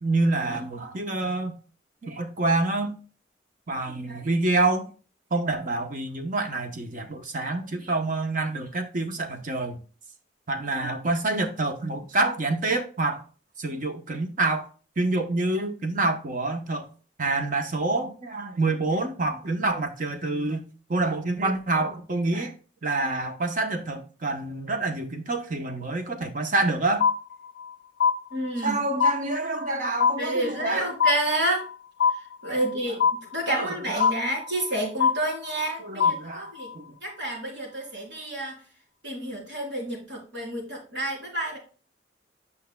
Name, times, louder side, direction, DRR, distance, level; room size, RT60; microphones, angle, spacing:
voice 1, 0.0-1.6 2.0-3.0 3.7-4.9 5.3-9.8 10.5-13.2 13.6-14.6 15.0-16.9 17.2-22.5 22.8-27.1 28.6-30.9 32.5-32.6 33.5-34.1 35.8-36.9, right 2 dB, 45° right, 0.8 m, -27 dB
sound 1, 27.0-27.7 28.0-28.7 29.0-29.7 30.0-30.7 31.0-31.7 32.0-32.7 33.0-33.7 34.0-34.7 35.0-35.7 36.0-36.7, left 6 dB, 65° left, 0.4 m, -24 dB
voice 2, 28.3-28.8 30.2-31.6 32.4-33.0 33.3-36.7 37.0-38.6 39.0-41.6, right 1 dB, 85° right, 3.3 m, -29 dB
9.1 x 5.5 x 2.2 m
head